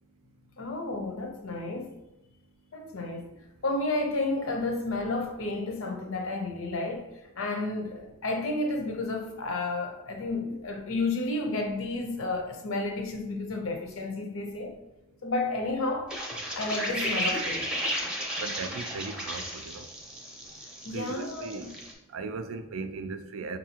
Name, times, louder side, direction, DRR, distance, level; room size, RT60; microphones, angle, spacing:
voice 1, 0.6-1.9 2.7-3.2 3.6-7.1 7.4-14.7 15.2-16.1 16.5-17.7 20.8-21.7, left 2 dB, 70° left, 0.7 m, -31 dB
sound 1, 16.1-21.9, equal, 5° right, 0.6 m, -34 dB
voice 2, 18.4-19.8 20.9-21.7 22.1-23.6, right 4 dB, 75° right, 0.4 m, -37 dB
5.5 x 2.7 x 2.8 m
head